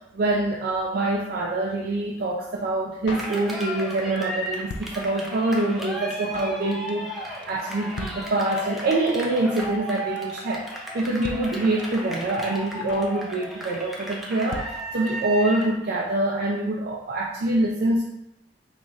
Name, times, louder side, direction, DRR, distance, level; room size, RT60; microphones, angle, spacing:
voice 1, 0.1-14.6 14.9-18.0, right 2 dB, 60° right, -2 dB, 0.4 m, -25 dB
Drum kit, 3.1-3.9 4.2-4.3 4.4-5.5 5.8-5.9 6.1-6.6 6.9-7.2 7.4-7.5 7.7-7.8 8.0-8.8 9.1-9.2 9.3-9.9 10.2-10.4 10.7-10.8 11.0-11.1 11.2-12.1 12.3-12.4 12.6-13.2 13.4-13.7 14.0-14.1 14.2-14.3 14.5-15.3 15.6-15.7 15.9-16.0, left 3 dB, 75° left, 0.3 m, -39 dB
Cheering, 3.1-15.8, equal, ahead, 0.5 m, -35 dB
3.8 x 3.0 x 2.3 m, 0.86 s
head